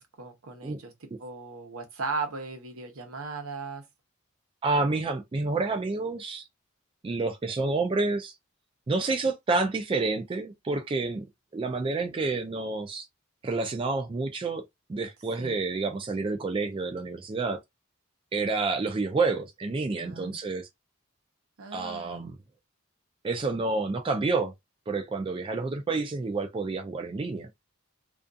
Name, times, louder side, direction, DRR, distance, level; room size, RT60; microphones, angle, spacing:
voice 1, 0.0-3.8 15.4-15.6 20.0-20.4 21.6-22.3, right 4 dB, 85° right, 0.8 m, -37 dB
voice 2, 4.6-6.4 7.0-8.3 8.9-11.2 11.5-13.1 13.4-14.6 14.9-17.6 18.3-20.7 21.7-22.4 23.2-24.5 24.9-27.6, right 3 dB, 25° right, 0.3 m, -29 dB
2.4 x 2.3 x 2.5 m
head